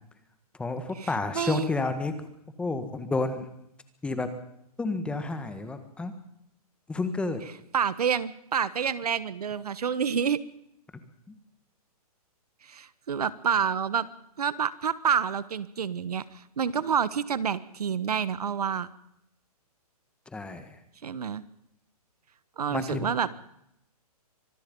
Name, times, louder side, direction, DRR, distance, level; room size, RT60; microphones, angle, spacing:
voice 1, 0.6-2.1 2.6-3.5 4.0-4.3 4.8-6.1 6.9-7.4 11.3-11.4 20.3-20.8 22.7-23.1, left 3 dB, 5° left, 9 dB, 1.6 m, -30 dB
voice 2, 1.3-1.7 7.7-10.4 12.6-14.1 14.4-18.9 21.0-21.4 22.6-23.3, right 7 dB, 75° right, 17 dB, 1.4 m, -28 dB
25.0 x 20.0 x 5.4 m, 0.77 s
hypercardioid pair, 155°, 20 cm